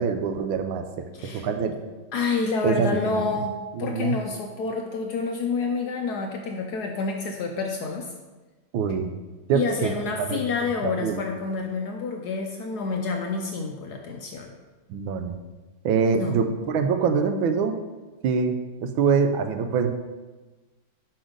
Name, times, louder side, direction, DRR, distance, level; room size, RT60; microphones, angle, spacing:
voice 1, 0.0-1.1 1.4-1.7 2.6-3.2 3.8-4.1 8.7-9.1 9.5-9.9 10.2-10.4 10.8-11.2 14.9-15.3 15.8-17.8 18.2-19.9, right 6 dB, 80° right, 7 dB, 1.4 m, -24 dB
voice 2, 1.1-1.5 2.1-8.1 9.5-14.5 16.1-16.4, left 4 dB, 70° left, 2 dB, 1.0 m, -28 dB
5.8 x 5.4 x 5.0 m, 1.2 s
omnidirectional pair, 2.2 m